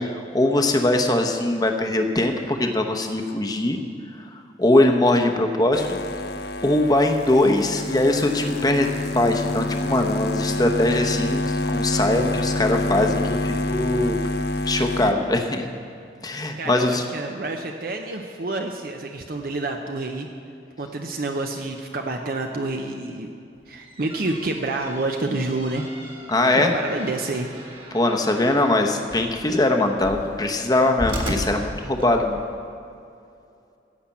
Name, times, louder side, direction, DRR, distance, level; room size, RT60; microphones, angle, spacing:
voice 1, 0.0-3.8 4.6-6.0 6.6-8.9 9.1-14.2 14.7-15.7 16.2-17.1 26.3-26.7 27.9-32.4, left 2 dB, 20° left, 4 dB, 0.9 m, -21 dB
sound 1, 5.7-15.1, left 1 dB, 60° left, 0.6 m, -27 dB
voice 2, 16.6-20.3 20.8-23.3 23.7-25.9 26.5-27.5, right 2 dB, 55° right, 3 dB, 0.7 m, -28 dB
sound 2, 23.6-32.5, right 1 dB, 30° right, 1.6 m, -36 dB
14.5 x 5.9 x 8.5 m, 2.5 s
head